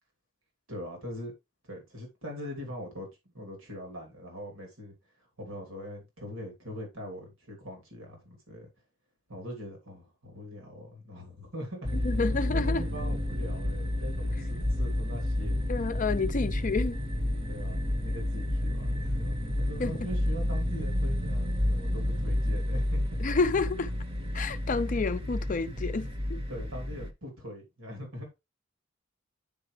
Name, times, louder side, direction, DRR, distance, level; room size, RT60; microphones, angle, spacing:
voice 1, 0.7-1.3 1.7-3.1 3.3-4.9 5.4-8.7 9.3-15.6 17.5-23.0 26.5-28.3, equal, 85° right, 3.1 m, -42 dB
sound 1, 11.8-27.1, left 1 dB, 30° right, 0.9 m, -30 dB
voice 2, 12.0-12.8 15.7-17.0 19.8-19.9 23.2-23.9 24.3-26.4, left 4 dB, 40° left, 0.5 m, -29 dB
9.3 x 4.9 x 3.3 m
head